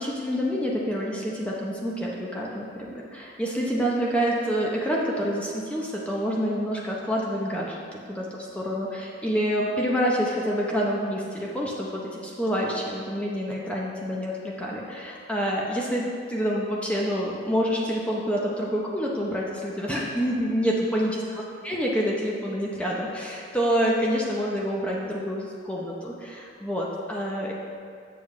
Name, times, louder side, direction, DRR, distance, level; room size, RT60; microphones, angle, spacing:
voice 1, 0.0-7.8 8.1-8.3 8.5-21.2 21.6-27.5, equal, 5° left, -4 dB, 0.7 m, -27 dB
7.4 x 7.0 x 3.1 m, 2.2 s
head